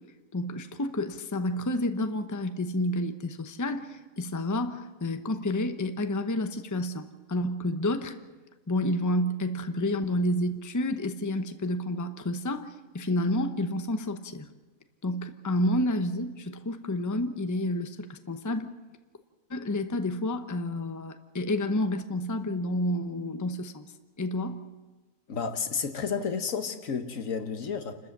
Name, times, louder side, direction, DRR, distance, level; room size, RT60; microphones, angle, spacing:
voice 1, 0.3-8.2 8.7-14.5 15.0-18.7 19.5-23.9 24.2-24.6, left 1 dB, 15° left, 0.8 m, -30 dB
voice 2, 25.3-28.0, left 6 dB, 75° left, 1.6 m, -31 dB
28.5 x 13.5 x 7.4 m
omnidirectional pair, 1.4 m